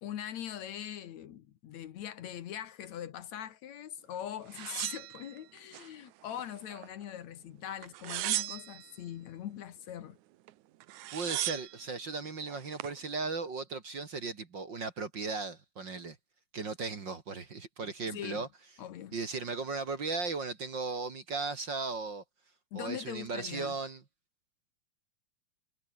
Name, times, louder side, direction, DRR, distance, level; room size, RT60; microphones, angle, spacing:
voice 1, 0.0-10.2 17.8-18.5 18.8-19.1 22.7-23.8, left 10 dB, 65° left, 2.4 m, -42 dB
sound 1, 4.5-5.9 6.3-7.1 7.8-8.9 10.5-10.6 10.8-11.8 12.5-13.0, right 15 dB, 75° right, 2.2 m, -37 dB
voice 2, 11.1-16.2 16.5-18.5 19.1-22.2 22.7-24.0, right 4 dB, 40° right, 2.5 m, -36 dB
omnidirectional pair, 3.6 m